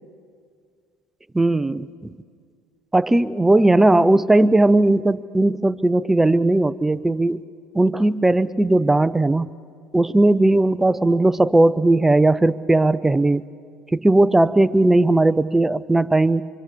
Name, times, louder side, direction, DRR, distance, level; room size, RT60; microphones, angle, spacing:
voice 1, 1.3-1.9 2.9-7.4 7.7-9.5 9.9-13.4 13.9-16.5, right 2 dB, 10° right, 16 dB, 0.5 m, -17 dB
26.0 x 24.5 x 6.8 m, 2.2 s
supercardioid pair, 95°, 3 cm